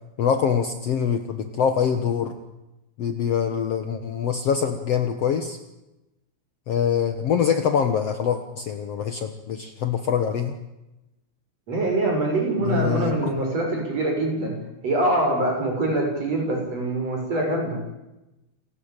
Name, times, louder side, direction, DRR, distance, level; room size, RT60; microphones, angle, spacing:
voice 1, 0.2-2.4 3.0-5.6 6.7-10.6 12.6-13.3, left 7 dB, 90° left, 8 dB, 1.3 m, -24 dB
voice 2, 11.7-14.6 14.8-17.8, right 2 dB, 35° right, 1 dB, 7.5 m, -24 dB
28.5 x 16.5 x 9.0 m, 0.98 s
omnidirectional pair, 4.9 m